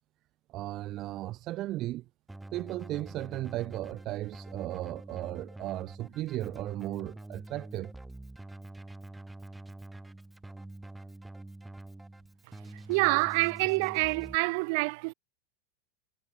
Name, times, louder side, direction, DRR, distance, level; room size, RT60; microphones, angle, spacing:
voice 1, 0.5-2.0 2.5-7.9, right 16 dB, 45° right, 1.2 m, -36 dB
Keyboard (musical), 2.3-14.4, right 2 dB, 5° right, 5.7 m, -46 dB
voice 2, 12.7-15.1, right 31 dB, 60° right, 2.3 m, -27 dB
hypercardioid pair, 105°, 0 cm